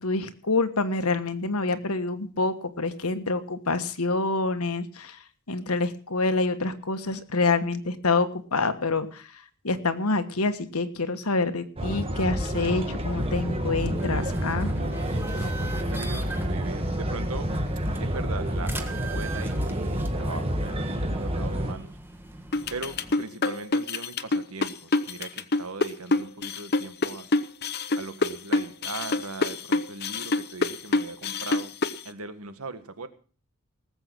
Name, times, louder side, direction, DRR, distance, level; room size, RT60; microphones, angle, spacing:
voice 1, 0.0-14.7, left 3 dB, 90° left, 9 dB, 1.4 m, -27 dB
sound 1, 11.8-21.7, equal, 25° right, 1.6 m, -29 dB
sound 2, 12.5-23.1, right 2 dB, 10° right, 1.4 m, -40 dB
voice 2, 15.3-17.5 18.0-22.0 22.7-27.3 28.0-31.7 32.0-33.1, right 3 dB, 85° right, 10 dB, 1.6 m, -39 dB
sound 3, 22.5-32.0, left 3 dB, 50° left, 0.8 m, -26 dB
19.0 x 7.9 x 6.1 m, 0.40 s
head